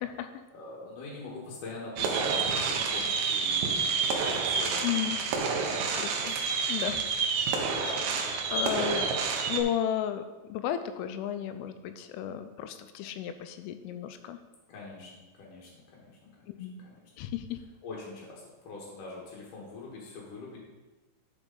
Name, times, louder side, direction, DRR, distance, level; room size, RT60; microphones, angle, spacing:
voice 1, 0.5-4.9 5.7-6.3 14.7-17.0 17.8-20.6, left 3 dB, 65° left, -4 dB, 2.1 m, -44 dB
sound 1, 2.0-9.6, right 5 dB, 85° right, 2.1 m, -29 dB
voice 2, 4.8-5.2 6.0-6.4 6.7-7.1 7.8-8.0 8.5-9.1 9.5-10.2 10.5-14.4 16.5-16.8 17.2-17.6, left 10 dB, 85° left, 9 dB, 3.1 m, -33 dB
12.0 x 4.5 x 3.8 m, 1.2 s
omnidirectional pair, 5.6 m